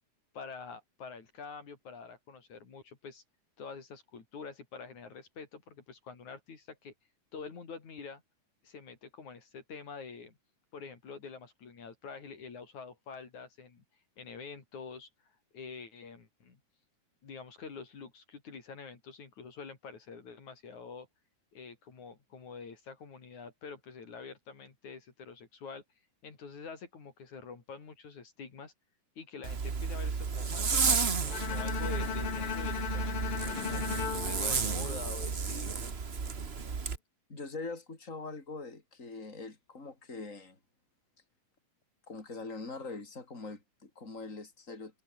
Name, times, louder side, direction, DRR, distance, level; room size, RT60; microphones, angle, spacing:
voice 1, 0.3-3.2 3.6-6.9 7.3-8.2 8.6-10.3 10.7-13.8 14.2-16.6 17.2-21.1 21.5-25.8 26.2-28.7 29.2-35.8, left 5 dB, 75° left, 5.3 m, -46 dB
Zipper (clothing), 29.4-37.0, right 5 dB, 40° right, 0.8 m, -32 dB
Bowed string instrument, 31.3-35.5, left 8 dB, 50° left, 2.5 m, -37 dB
voice 2, 37.3-40.6 42.1-45.0, left 3 dB, 25° left, 5.2 m, -43 dB
omnidirectional pair, 3.4 m